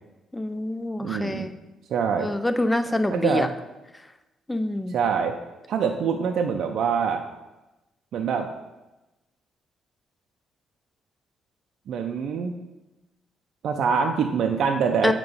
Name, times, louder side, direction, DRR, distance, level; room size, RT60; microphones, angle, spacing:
voice 1, 0.3-1.5 2.2-3.5 4.5-5.0 15.0-15.1, left 1 dB, 10° left, 9 dB, 0.5 m, -25 dB
voice 2, 1.0-1.5 1.9-2.3 3.1-3.5 4.9-5.4 5.7-7.2 8.1-8.5 11.9-12.5 13.6-15.1, right 6 dB, 65° right, 3 dB, 0.5 m, -24 dB
7.5 x 3.0 x 5.4 m, 1.0 s
cardioid pair, 90°, 0 cm